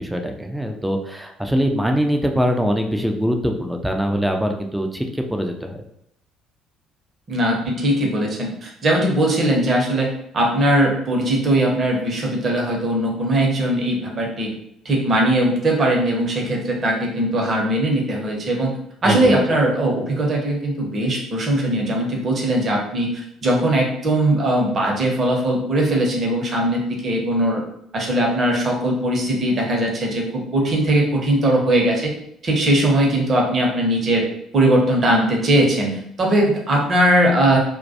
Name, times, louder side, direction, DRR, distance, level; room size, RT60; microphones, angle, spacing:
voice 1, 0.0-5.8 19.0-19.4, equal, 5° right, 4 dB, 0.4 m, -23 dB
voice 2, 7.3-14.5 14.8-27.6 27.9-32.1 32.4-34.3 34.5-37.6, right 1 dB, 40° right, 0 dB, 0.7 m, -20 dB
2.2 x 2.2 x 2.7 m, 0.74 s
figure-of-eight pair, 50°, 0 cm